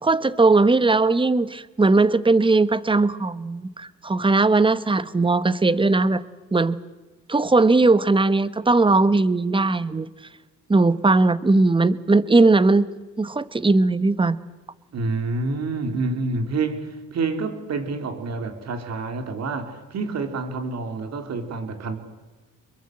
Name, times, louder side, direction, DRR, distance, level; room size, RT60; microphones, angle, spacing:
voice 1, 0.0-6.2 6.5-6.8 7.3-10.1 10.7-12.9 13.2-14.4, right 3 dB, 15° right, 15 dB, 1.2 m, -19 dB
voice 2, 14.9-22.0, right 3 dB, 60° right, 7 dB, 3.7 m, -28 dB
25.5 x 22.5 x 7.8 m, 1.2 s
cardioid pair, 90°, 30 cm